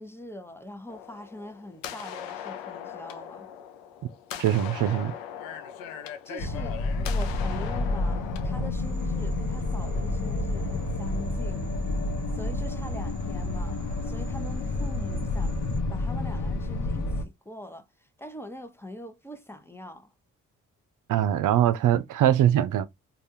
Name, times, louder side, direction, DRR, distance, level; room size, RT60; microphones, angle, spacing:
voice 1, 0.0-3.5 6.2-6.8 7.1-11.7 12.3-15.6 15.9-17.9 18.2-20.1, left 1 dB, 5° left, 0.8 m, -43 dB
sound 1, 0.9-8.7, left 9 dB, 90° left, 0.6 m, -40 dB
voice 2, 4.4-5.1 21.1-22.9, right 11 dB, 65° right, 0.6 m, -22 dB
sound 2, 6.4-17.2, left 2 dB, 65° left, 0.8 m, -29 dB
sound 3, 8.7-15.8, right 2 dB, 35° right, 1.1 m, -41 dB
3.4 x 2.4 x 2.7 m
supercardioid pair, 55°, 34 cm